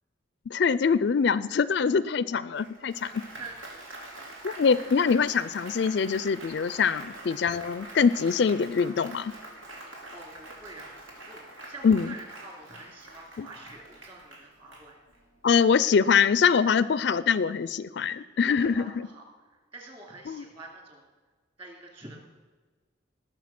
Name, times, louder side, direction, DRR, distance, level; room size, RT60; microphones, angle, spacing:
voice 1, 0.5-3.1 4.4-9.3 11.8-12.1 13.4-13.5 15.4-18.8 20.3-20.4, left 6 dB, 55° left, 17 dB, 0.4 m, -24 dB
Applause, 2.5-15.3, right 1 dB, 85° right, 3.0 m, -45 dB
voice 2, 10.1-10.9 11.2-15.0 18.0-19.3 19.7-21.1 21.6-22.2, right 3 dB, 25° right, 1 dB, 2.8 m, -46 dB
19.0 x 6.8 x 5.9 m, 1.3 s
head